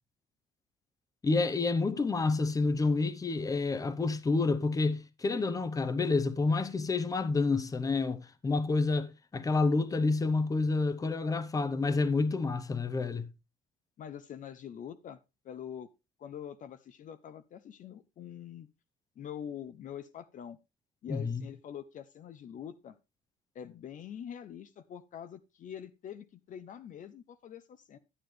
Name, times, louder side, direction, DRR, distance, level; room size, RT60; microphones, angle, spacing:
voice 1, 1.2-13.3 21.1-21.4, left 3 dB, 20° left, 0.8 m, -29 dB
voice 2, 14.0-15.9 16.2-18.7 19.2-20.6 21.0-23.0 23.5-28.0, left 9 dB, 50° left, 0.6 m, -45 dB
11.0 x 7.7 x 3.2 m
cardioid pair, 110°, 17 cm